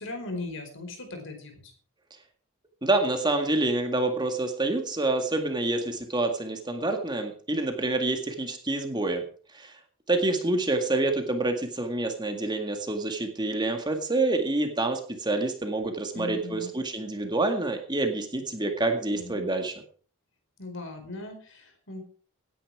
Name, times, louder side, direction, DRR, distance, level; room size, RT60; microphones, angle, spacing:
voice 1, 0.0-1.6 16.1-16.7 19.1-19.4 20.6-22.0, left 2 dB, 55° left, 5 dB, 4.8 m, -38 dB
voice 2, 2.8-9.2 9.5-9.8 10.1-19.7, right 2 dB, 20° right, 5 dB, 1.9 m, -27 dB
18.0 x 10.0 x 4.9 m, 0.43 s
head